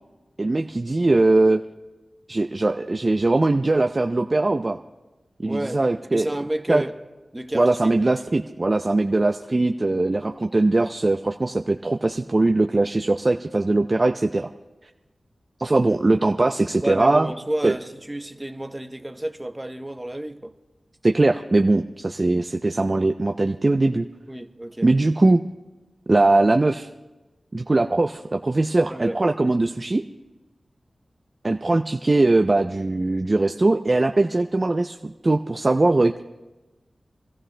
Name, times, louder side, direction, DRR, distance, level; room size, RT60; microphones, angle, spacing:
voice 1, 0.4-1.6 2.3-4.8 5.4-6.3 6.7-6.8 7.5-14.5 15.6-17.3 17.6-17.7 21.0-24.1 24.8-25.4 26.1-26.9 27.5-30.0 31.4-35.0 35.2-36.2, right 2 dB, 40° right, 0.5 m, -20 dB
voice 2, 5.5-5.8 6.1-6.9 7.3-8.3 16.8-20.5 24.3-24.9 28.9-29.2, right 1 dB, 20° right, 0.8 m, -31 dB
27.0 x 14.0 x 2.2 m
cardioid pair, 50°, 0 cm